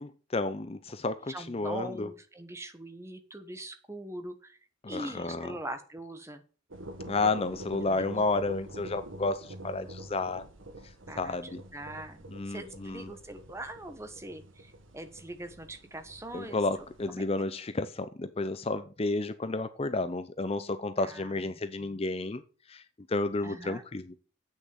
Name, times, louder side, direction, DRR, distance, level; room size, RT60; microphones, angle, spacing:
voice 1, 0.0-2.1 4.8-5.6 7.1-10.4 11.2-11.6 12.3-13.1 16.3-22.4 22.7-22.8 23.1-24.1, left 3 dB, 30° left, 12 dB, 0.5 m, -31 dB
voice 2, 1.3-4.6 4.9-6.4 7.8-8.0 11.1-17.3 21.0-22.0 23.4-23.8, right 1 dB, 15° right, 8 dB, 1.1 m, -42 dB
sound 1, 6.7-17.1, right 1 dB, 75° right, 1.6 m, -47 dB
8.3 x 6.5 x 7.3 m, 0.37 s
head